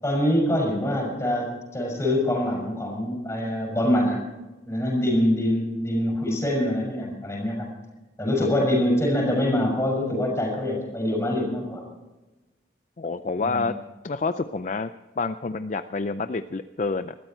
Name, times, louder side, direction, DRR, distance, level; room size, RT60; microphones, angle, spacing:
voice 1, 0.0-4.2 4.7-7.7 8.2-11.8 13.4-13.7, left 1 dB, 15° left, -1 dB, 6.2 m, -24 dB
voice 2, 13.0-13.7 14.0-14.9 15.2-17.1, left 3 dB, 40° left, 10 dB, 0.4 m, -28 dB
20.5 x 13.5 x 4.5 m, 1.1 s
head